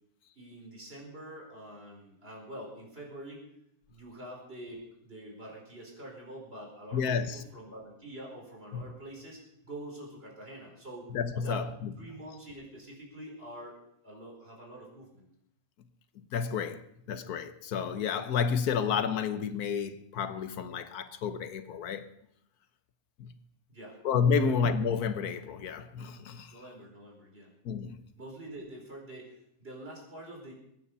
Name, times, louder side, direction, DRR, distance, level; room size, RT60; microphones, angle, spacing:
voice 1, 0.3-3.4 3.9-11.1 11.4-11.6 12.0-13.8 14.0-15.2 23.7-24.0 24.4-24.5 26.5-27.5 28.2-30.5, right 1 dB, 40° right, 5.0 m, -46 dB
voice 2, 6.9-7.5 8.7-8.8 11.1-11.9 16.2-22.1 23.2-23.4 24.0-26.5 27.6-28.0, left 6 dB, 90° left, 1.5 m, -30 dB
23.0 x 9.5 x 5.5 m
omnidirectional pair, 1.6 m